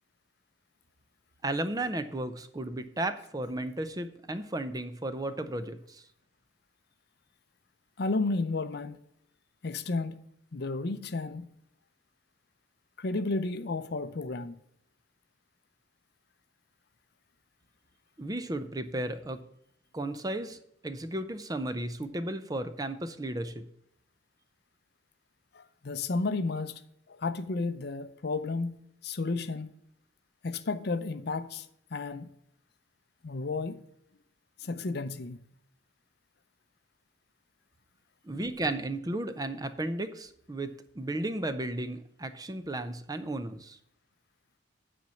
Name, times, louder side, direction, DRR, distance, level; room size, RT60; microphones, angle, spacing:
voice 1, 1.4-6.0 18.2-19.4 19.9-20.6 20.8-23.6 38.2-40.7 41.0-43.8, right 1 dB, 20° right, 0.6 m, -34 dB
voice 2, 8.0-9.0 9.6-10.2 10.5-11.5 13.0-14.5 25.5-26.8 27.1-29.7 30.4-32.3 33.2-33.8 34.6-35.4 38.3-38.5, left 3 dB, 55° left, 0.6 m, -32 dB
9.0 x 4.3 x 7.0 m
head